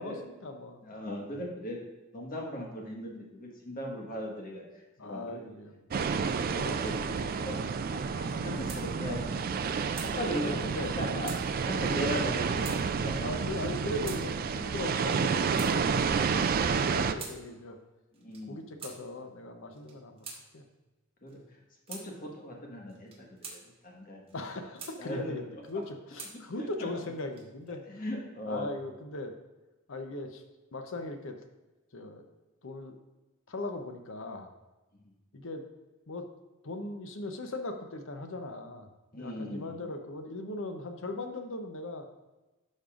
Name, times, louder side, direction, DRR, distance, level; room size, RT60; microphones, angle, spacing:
voice 1, 0.0-1.2 5.0-5.7 10.1-10.9 13.2-16.4 16.7-17.8 18.5-20.3 20.5-20.6 24.3-27.8 28.5-29.3 29.9-30.4 30.7-31.4 31.9-32.3 32.6-33.0 33.5-34.5 35.3-35.6 36.1-36.3 36.6-42.1, left 2 dB, 65° left, 6 dB, 0.8 m, -39 dB
voice 2, 0.8-1.8 2.1-4.6 5.0-5.4 5.9-7.6 7.9-9.7 10.2-10.6 10.9-11.3 11.6-13.5 18.2-18.6 21.2-21.4 21.9-24.2 25.0-25.3 26.6-26.7 27.9-28.7 39.1-39.8, equal, 40° left, -1 dB, 1.5 m, -38 dB
sound 1, 5.9-17.1, right 5 dB, 45° right, 0.3 m, -30 dB
sound 2, 8.3-8.8 9.2-9.3 9.5-10.1 10.8-10.9 11.2-11.4 12.2-12.3 12.6-12.8 13.5-13.7 14.0-14.2 14.9-15.7 16.5-17.4 18.1-18.4 18.8-19.0 19.7-20.4 21.3-21.4 21.9-22.1 22.9-23.6 24.3-25.0 25.6-26.3 27.1-27.7, right 4 dB, 30° right, 1.3 m, -45 dB
11.5 x 5.4 x 2.5 m, 1.1 s
head